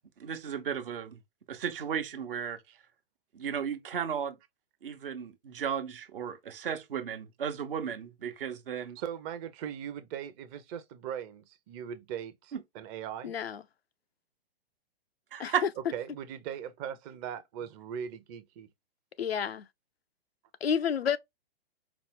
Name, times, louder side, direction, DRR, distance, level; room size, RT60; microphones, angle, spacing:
voice 1, 0.2-1.2 1.5-2.6 3.3-4.4 4.8-9.0 12.5-12.6 15.3-15.6, right 8 dB, 65° right, 0.9 m, -34 dB
voice 2, 9.0-13.3 15.9-18.7, right 9 dB, 30° right, 0.6 m, -39 dB
voice 3, 13.2-13.6 15.4-15.5 19.2-19.7 20.6-21.2, left 7 dB, 85° left, 0.5 m, -30 dB
4.9 x 2.0 x 3.6 m
figure-of-eight pair, 115°, 30 cm